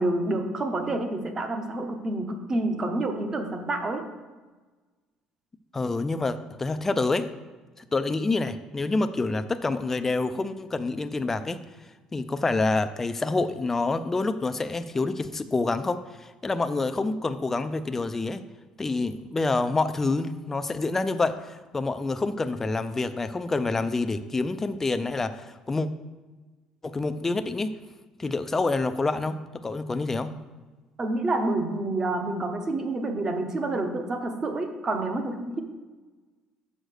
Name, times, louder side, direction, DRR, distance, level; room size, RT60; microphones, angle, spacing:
voice 1, 0.0-4.1 31.0-35.6, right 2 dB, 25° right, 6 dB, 0.8 m, -28 dB
voice 2, 5.7-7.3 7.8-11.6 12.1-18.4 18.8-25.9 26.8-27.7 28.2-30.3, left 3 dB, 15° left, 10 dB, 0.4 m, -27 dB
6.3 x 5.1 x 6.5 m, 1.3 s
cardioid pair, 140°, 2 cm